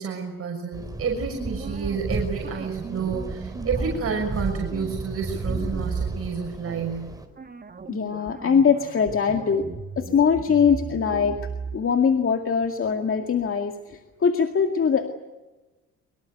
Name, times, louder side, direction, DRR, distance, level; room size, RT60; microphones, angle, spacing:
voice 1, 0.0-7.1, right 5 dB, 50° right, 0 dB, 6.2 m, -30 dB
sound 1, 0.7-7.3, right 2 dB, 10° right, 4.3 m, -33 dB
sound 2, 1.2-6.3 6.7-6.9 7.4-11.8, right 5 dB, 30° right, 2.0 m, -36 dB
voice 2, 7.9-9.7 10.0-11.4 11.7-15.1, left 6 dB, 45° left, 5 dB, 2.2 m, -22 dB
24.0 x 23.0 x 8.1 m, 1.1 s
cardioid pair, 90°, 30 cm